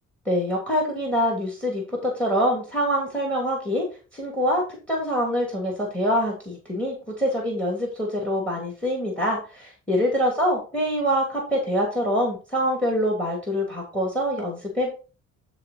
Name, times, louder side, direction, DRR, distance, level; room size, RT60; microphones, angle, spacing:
voice 1, 0.3-3.8 4.1-4.6 4.9-14.9, equal, 5° left, 0 dB, 2.7 m, -25 dB
10.5 x 3.8 x 4.2 m, 0.34 s
cardioid pair, 90°, 30 cm